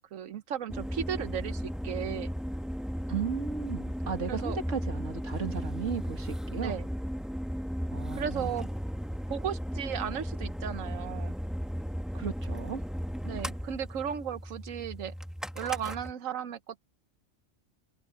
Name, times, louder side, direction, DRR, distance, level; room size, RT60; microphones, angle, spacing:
voice 1, 0.0-2.3 4.3-4.6 6.6-6.9 8.1-8.7 9.3-11.3 13.2-15.1 15.6-16.8, right 9 dB, 85° right, 1.3 m, -35 dB
sound 1, 0.7-16.1, equal, ahead, 1.2 m, -35 dB
voice 2, 3.1-6.8 7.9-8.5 12.1-12.8, right 6 dB, 70° right, 2.4 m, -35 dB
omnidirectional pair, 1.3 m